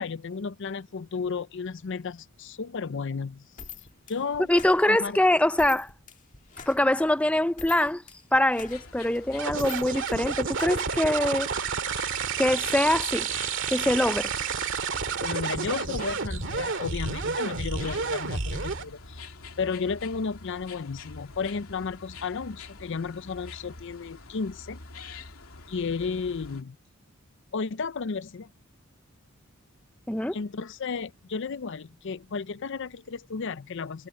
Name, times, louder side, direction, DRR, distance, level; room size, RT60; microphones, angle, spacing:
voice 1, 0.0-3.5 4.1-4.5 4.9-5.2 15.2-24.8 25.7-26.8 27.5-28.5 30.3-34.1, left 5 dB, 60° left, 0.5 m, -33 dB
sound 1, 3.6-11.4, left 6 dB, 35° left, 1.6 m, -46 dB
voice 2, 4.5-5.9 6.7-8.0 8.3-11.5 12.4-13.3 13.7-14.3 30.1-30.4, left 1 dB, 5° left, 0.6 m, -24 dB
sound 2, 8.6-26.6, left 3 dB, 80° left, 2.8 m, -47 dB
sound 3, 9.4-18.8, right 5 dB, 60° right, 2.0 m, -30 dB
head